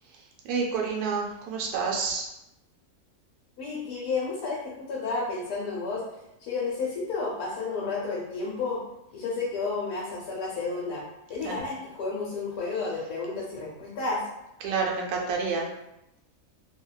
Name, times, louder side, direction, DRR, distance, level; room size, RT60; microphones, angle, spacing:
voice 1, 0.5-2.2 11.4-11.5 14.6-15.6, right 5 dB, 85° right, 0 dB, 1.1 m, -28 dB
voice 2, 3.6-6.0 6.4-8.8 9.1-11.0 11.3-14.3, left 4 dB, 75° left, -5 dB, 1.1 m, -31 dB
2.6 x 2.2 x 2.2 m, 0.88 s
omnidirectional pair, 1.6 m